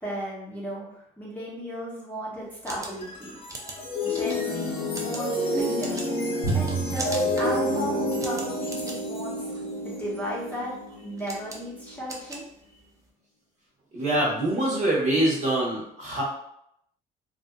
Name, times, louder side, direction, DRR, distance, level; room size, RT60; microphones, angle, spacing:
voice 1, 0.0-3.4 4.0-6.1 6.5-9.5 9.8-10.7 11.0-12.5, equal, 10° left, -7 dB, 0.9 m, -35 dB
sound 1, 2.4-13.1, right 2 dB, 20° right, 0.4 m, -42 dB
sound 2, 2.8-12.0, left 1 dB, 35° left, 0.7 m, -30 dB
Drum, 6.4-8.8, right 4 dB, 85° right, 1.2 m, -31 dB
voice 2, 13.9-16.2, right 1 dB, 45° right, -5 dB, 1.0 m, -24 dB
2.5 x 2.4 x 2.2 m, 0.75 s
cardioid pair, 110°, 17 cm